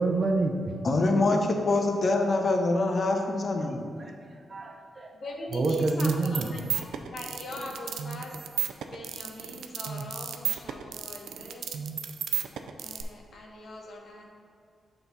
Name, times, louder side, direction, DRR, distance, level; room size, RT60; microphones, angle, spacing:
voice 1, 0.0-0.7 4.0-4.1 4.5-5.1 5.5-6.5, right 3 dB, 40° right, 3 dB, 0.7 m, -27 dB
voice 2, 0.8-4.0, left 2 dB, 50° left, 4 dB, 0.8 m, -25 dB
voice 3, 5.1-8.4 8.9-11.7 12.8-14.3, left 2 dB, 65° left, 0 dB, 1.1 m, -41 dB
sound 1, 5.5-13.0, right 8 dB, 85° right, 0.4 m, -33 dB
5.8 x 4.0 x 5.5 m, 2.3 s
cardioid pair, 75°, 0 cm